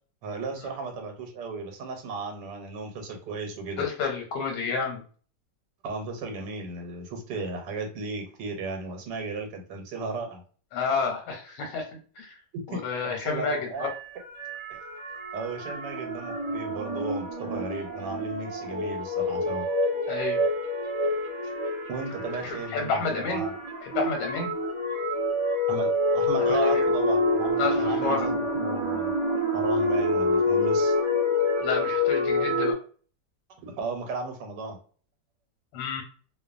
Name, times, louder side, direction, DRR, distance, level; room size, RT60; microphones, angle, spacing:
voice 1, 0.2-3.8 5.8-10.4 12.7-13.9 15.3-19.7 21.9-23.5 25.7-29.1 29.5-31.0 33.6-34.8, right 3 dB, 90° right, 4 dB, 1.3 m, -35 dB
voice 2, 3.8-5.0 10.7-12.4 12.7-13.9 20.1-20.4 22.4-23.4 23.8-24.5 26.5-26.9 27.6-28.3 31.6-32.7 35.7-36.0, left 5 dB, 90° left, 3 dB, 1.3 m, -30 dB
sound 1, 13.8-32.7, left 1 dB, 50° right, 0.3 m, -27 dB
2.9 x 2.1 x 2.4 m, 0.42 s
omnidirectional pair, 1.8 m